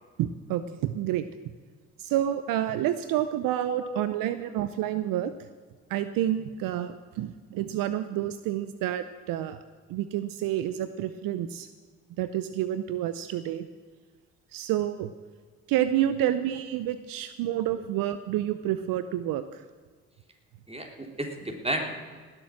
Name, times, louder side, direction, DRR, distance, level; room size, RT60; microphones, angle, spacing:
voice 1, 0.2-1.3 2.0-5.3 5.9-9.6 9.9-11.7 12.2-13.7 14.5-15.1 15.7-19.6, right 12 dB, 70° right, 12 dB, 0.7 m, -29 dB
voice 2, 3.7-4.0 16.2-16.3 20.7-22.2, right 1 dB, 15° right, 2 dB, 3.4 m, -33 dB
19.0 x 7.5 x 6.3 m, 1.5 s
hypercardioid pair, 50°, 35 cm